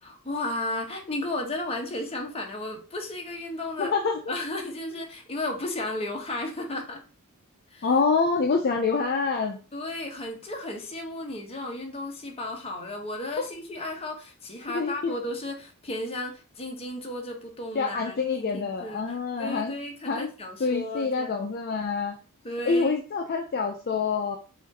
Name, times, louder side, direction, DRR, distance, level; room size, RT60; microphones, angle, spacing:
voice 1, 0.0-3.9 4.3-7.0 7.7-7.9 9.7-19.0 19.4-21.4 22.4-23.0, left 1 dB, 25° left, 1 dB, 1.0 m, -34 dB
voice 2, 3.8-4.2 7.8-9.6 13.4-13.5 14.7-15.1 17.7-19.7 20.1-20.3 20.6-22.2 22.7-24.4, left 4 dB, 45° left, 4 dB, 0.5 m, -26 dB
4.9 x 2.5 x 4.0 m, 0.35 s
head